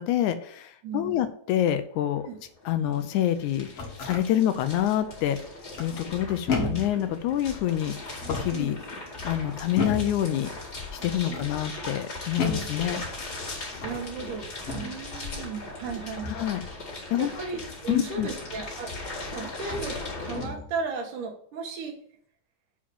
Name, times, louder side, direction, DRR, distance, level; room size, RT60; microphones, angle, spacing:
voice 1, 0.0-2.2 2.7-5.4 5.8-8.8 9.2-10.5 10.9-13.0 16.2-16.6 17.1-17.3 17.9-18.3, left 11 dB, 80° left, 10 dB, 1.9 m, -27 dB
voice 2, 0.8-1.2 2.3-2.4 8.5-8.8 11.3-11.5 13.8-16.3 17.2-18.9 19.3-21.9, right 5 dB, 75° right, 3 dB, 2.9 m, -35 dB
sound 1, 2.0-20.5, left 2 dB, 30° left, 2.6 m, -39 dB
sound 2, 3.5-4.2 5.7-6.1 6.5-7.0 8.1-8.7 9.8-10.2 11.0-11.5 12.4-12.8 13.7-14.1 14.7-15.0 16.2-16.5 18.6-18.7 19.6-19.9 20.3-20.7, left 3 dB, 55° left, 2.5 m, -32 dB
7.3 x 4.9 x 7.0 m, 0.62 s
omnidirectional pair, 3.7 m